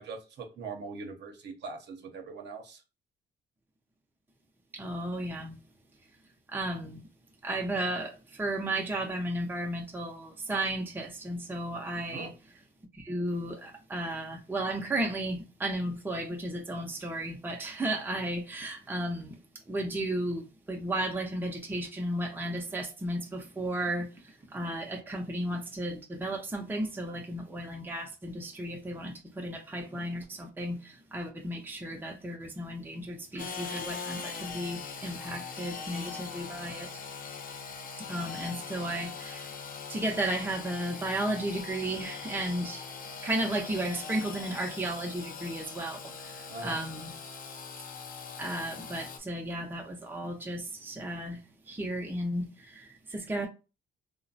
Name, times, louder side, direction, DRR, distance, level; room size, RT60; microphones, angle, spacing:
voice 1, 0.0-2.8 12.1-12.3 46.5-46.8, right 4 dB, 60° right, 0.7 m, -41 dB
voice 2, 4.7-5.6 6.5-7.1 7.4-12.3 12.9-19.4 19.7-37.0 38.1-39.5 39.9-42.9 43.2-47.2 48.4-51.4 51.7-53.5, right 1 dB, 10° right, 0.5 m, -34 dB
Engine / Sawing, 33.4-49.2, left 5 dB, 45° left, 0.5 m, -41 dB
3.0 x 2.0 x 2.6 m
cardioid pair, 90°, 20 cm